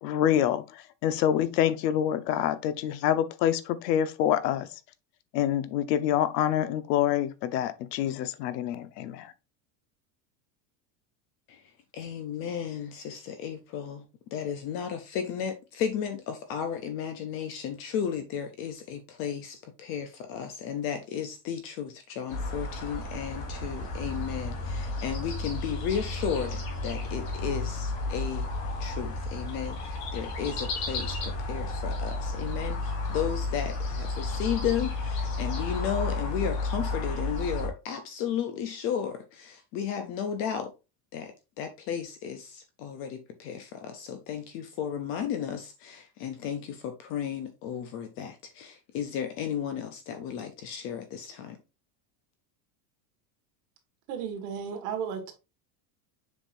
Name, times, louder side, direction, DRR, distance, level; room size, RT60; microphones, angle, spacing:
voice 1, 0.0-4.7 5.3-9.3, left 10 dB, 85° left, 0.9 m, -26 dB
voice 2, 11.9-14.0 14.3-28.5 28.8-40.7 41.1-41.3 41.6-51.6, left 8 dB, 30° left, 0.4 m, -34 dB
sound 1, 22.3-37.7, left 2 dB, 50° left, 2.6 m, -32 dB
voice 3, 54.1-55.3, right 7 dB, 60° right, 1.8 m, -34 dB
7.2 x 5.3 x 2.5 m
supercardioid pair, 170°, 48 cm